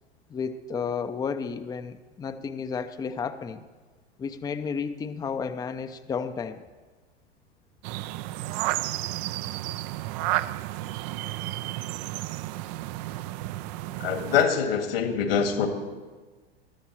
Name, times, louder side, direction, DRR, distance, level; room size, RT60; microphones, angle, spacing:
voice 1, 0.3-3.7 4.2-6.6 10.4-10.6, left 6 dB, 10° left, 11 dB, 0.5 m, -32 dB
sound 1, 7.8-14.5, right 16 dB, 40° right, 0.4 m, -32 dB
voice 2, 14.0-15.7, left 7 dB, 65° left, 6 dB, 1.9 m, -24 dB
21.5 x 14.0 x 3.1 m, 1.4 s
figure-of-eight pair, 90°, 32 cm